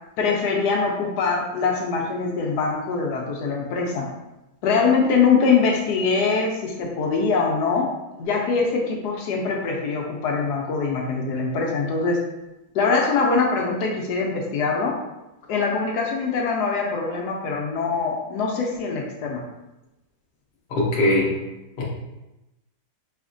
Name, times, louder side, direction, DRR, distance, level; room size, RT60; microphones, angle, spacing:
voice 1, 0.2-4.1 4.6-7.9 8.2-12.2 12.7-15.0 15.5-19.4, left 4 dB, 75° left, 0 dB, 1.1 m, -23 dB
voice 2, 20.7-21.3 21.8-21.9, left 1 dB, 40° left, -4 dB, 0.7 m, -20 dB
4.2 x 3.1 x 2.5 m, 0.99 s
omnidirectional pair, 1.8 m